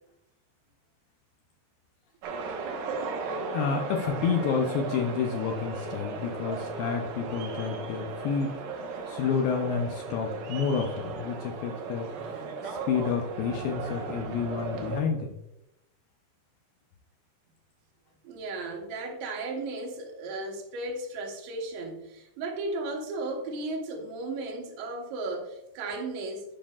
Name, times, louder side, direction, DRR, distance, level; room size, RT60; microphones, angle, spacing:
sound 1, 2.2-15.0, right 4 dB, 70° right, 2.6 m, -36 dB
voice 1, 3.5-8.6 9.1-12.1 12.6-15.4, left 6 dB, 85° left, 2 dB, 2.0 m, -29 dB
voice 2, 18.2-26.4, right 2 dB, 85° right, 1 dB, 3.4 m, -35 dB
12.0 x 5.4 x 2.3 m, 0.91 s
omnidirectional pair, 4.9 m